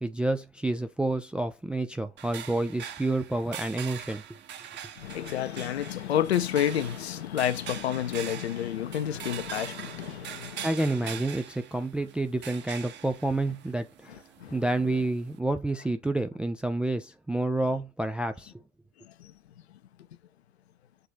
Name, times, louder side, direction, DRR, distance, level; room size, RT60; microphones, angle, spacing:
voice 1, 0.0-4.4 10.6-14.1 14.5-18.5, right 2 dB, 5° right, 0.4 m, -29 dB
sound 1, 2.2-15.4, right 9 dB, 30° right, 1.2 m, -43 dB
voice 2, 5.0-10.7 14.1-14.6 19.0-19.3, left 10 dB, 65° left, 0.9 m, -30 dB
6.8 x 3.9 x 4.1 m
figure-of-eight pair, 85°, 35 cm